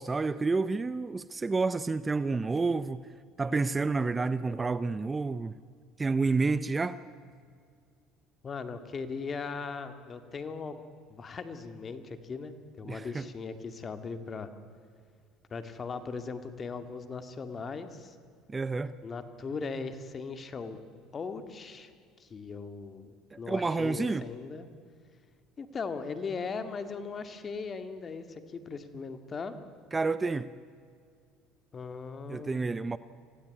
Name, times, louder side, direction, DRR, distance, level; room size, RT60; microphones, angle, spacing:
voice 1, 0.0-3.0 3.4-5.5 6.0-7.0 12.8-13.3 18.5-19.0 23.3-24.2 29.9-30.5 32.3-33.0, right 3 dB, 20° right, 15 dB, 0.7 m, -29 dB
voice 2, 8.4-14.5 15.5-18.2 19.0-20.8 21.1-21.9 22.2-23.1 23.4-24.7 25.6-29.6 31.7-32.6, left 4 dB, 35° left, 9 dB, 2.2 m, -38 dB
26.0 x 16.5 x 9.5 m, 2.1 s
supercardioid pair, 95°, 0 cm